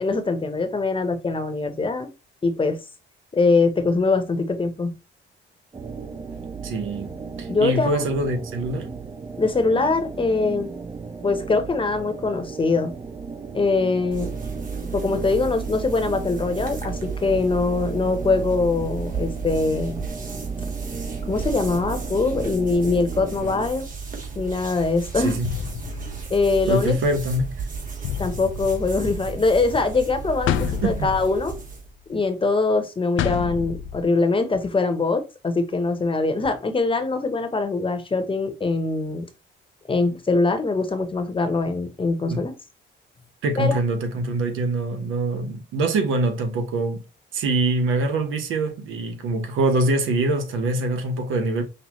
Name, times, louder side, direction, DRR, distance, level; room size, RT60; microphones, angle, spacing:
voice 1, 0.0-2.1 2.4-2.8 3.3-4.9 7.5-8.1 9.4-10.7 11.2-12.9 13.5-14.3 14.9-20.0 21.3-23.9 24.4-25.4 26.3-27.0 28.2-31.5 32.1-39.3 39.9-42.5 43.6-43.8, left 3 dB, 25° left, 0.9 m, -23 dB
sound 1, 5.7-23.7, right 5 dB, 20° right, 0.5 m, -36 dB
voice 2, 6.6-7.1 7.4-8.9 25.2-25.5 26.7-27.5 30.8-31.1 42.2-42.4 43.4-47.0 47.3-51.6, right 2 dB, 85° right, 1.2 m, -24 dB
sound 2, 14.1-31.9, right 5 dB, 40° right, 1.9 m, -33 dB
sound 3, 24.6-24.7 25.4-26.8 28.0-29.4 30.5-32.0 33.2-34.0, left 9 dB, 80° left, 0.5 m, -30 dB
5.5 x 2.4 x 3.0 m
cardioid pair, 90°, 20 cm